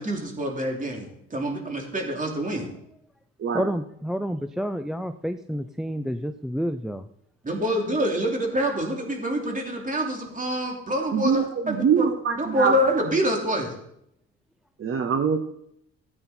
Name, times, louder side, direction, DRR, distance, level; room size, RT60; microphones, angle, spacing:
voice 1, 0.0-2.7 7.4-12.1 12.4-13.7, equal, 25° right, 1 dB, 3.1 m, -26 dB
voice 2, 3.5-7.1, equal, ahead, 9 dB, 0.5 m, -29 dB
voice 3, 11.1-12.7 14.8-15.4, right 6 dB, 45° right, 7 dB, 0.9 m, -23 dB
14.0 x 8.7 x 4.4 m, 0.74 s
cardioid pair, 90°, 30 cm